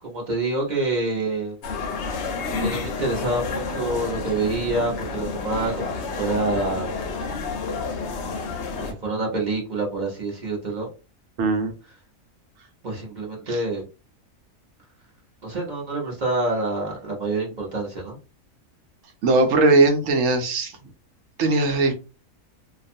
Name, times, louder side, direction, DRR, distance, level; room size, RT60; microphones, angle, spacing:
voice 1, 0.0-1.6 2.6-6.9 8.7-10.9 12.8-13.8 15.4-18.2, right 2 dB, 40° right, -2 dB, 0.8 m, -27 dB
sound 1, 1.6-8.9, left 4 dB, 65° left, 0.8 m, -30 dB
voice 2, 11.4-11.7 13.5-13.6 19.2-20.7 21.4-21.9, right 3 dB, 70° right, 5 dB, 1.0 m, -19 dB
2.5 x 2.3 x 2.6 m, 0.31 s
omnidirectional pair, 1.5 m